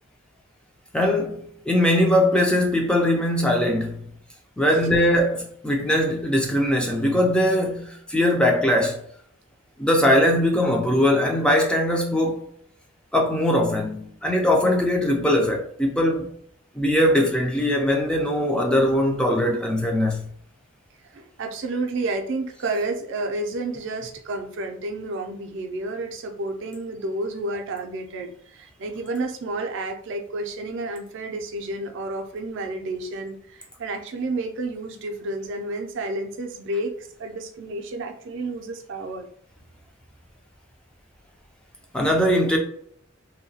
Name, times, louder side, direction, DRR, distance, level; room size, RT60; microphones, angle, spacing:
voice 1, 0.9-4.0 4.6-9.0 9.8-12.4 13.1-16.3 16.8-20.3 41.9-42.6, left 1 dB, 5° left, 0.3 m, -21 dB
voice 2, 21.1-39.3, right 2 dB, 60° right, 0.4 m, -31 dB
2.7 x 2.1 x 2.7 m
head